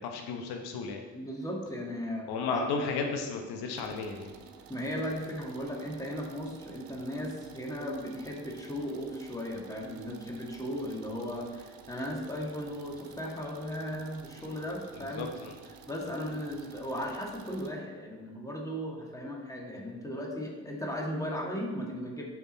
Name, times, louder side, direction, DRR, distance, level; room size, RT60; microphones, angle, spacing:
voice 1, 0.0-1.0 2.3-4.3 15.0-15.5, left 4 dB, 55° left, 4 dB, 1.0 m, -34 dB
voice 2, 1.1-2.7 4.7-15.3 15.9-22.2, equal, 5° left, -1 dB, 1.9 m, -36 dB
sound 1, 3.7-17.7, right 6 dB, 50° right, 0.9 m, -52 dB
6.8 x 6.2 x 4.1 m, 1.4 s
hypercardioid pair, 50°, 45 cm